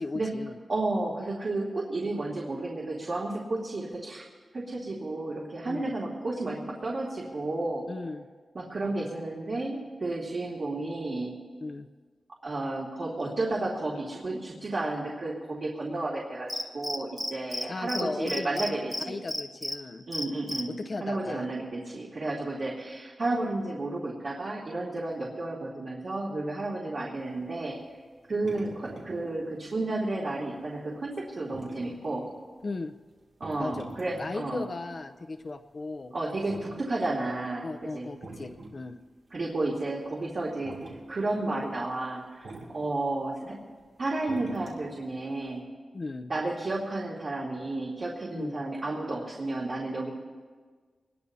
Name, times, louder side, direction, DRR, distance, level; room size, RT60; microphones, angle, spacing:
voice 1, 0.0-0.6 5.7-5.9 7.9-8.2 11.6-11.9 17.7-18.6 19.1-20.0 20.7-21.4 26.8-27.1 32.6-32.9 33.6-33.9 34.2-36.1 37.6-39.0 45.9-46.3 48.3-48.6, left 3 dB, 45° left, 8 dB, 0.6 m, -36 dB
voice 2, 0.7-4.3 4.5-7.8 8.5-11.3 12.4-19.1 20.1-20.8 21.0-27.8 28.3-32.3 33.4-34.7 36.1-37.7 37.9-38.1 39.3-40.8 41.1-43.6 44.0-45.6 46.3-50.1, right 2 dB, 55° right, -5 dB, 2.5 m, -32 dB
Cricket, 16.5-17.6 17.9-18.0 18.3-19.7 20.1-20.6, equal, 5° left, 1.2 m, -32 dB
sound 1, 27.2-32.7 33.1-37.5 37.8-39.1 39.3-39.6 40.0-40.3 40.6-41.0 41.4-41.6 42.0-42.7 43.0-45.1 45.4-45.5, right 2 dB, 85° right, 3.2 m, -46 dB
23.5 x 20.5 x 2.8 m, 1.5 s
wide cardioid pair, 100°, 0 cm